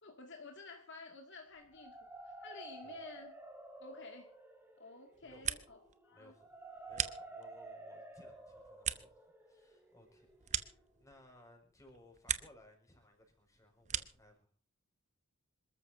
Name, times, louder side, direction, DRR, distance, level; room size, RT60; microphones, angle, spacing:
voice 1, 0.0-3.3 3.8-4.3 4.8-5.8 6.1-6.3, left 3 dB, 55° left, 3 dB, 2.2 m, -52 dB
sound 1, 1.6-11.4, right 2 dB, 10° right, 2.6 m, -53 dB
sound 2, 5.1-6.0 6.3-7.7 8.1-11.4 11.8-12.7 13.0-14.3, right 9 dB, 30° right, 0.9 m, -41 dB
voice 2, 5.2-5.6 6.1-6.6 6.9-14.5, left 1 dB, 15° left, 3 dB, 5.7 m, -62 dB
27.0 x 13.5 x 2.7 m, 0.40 s
head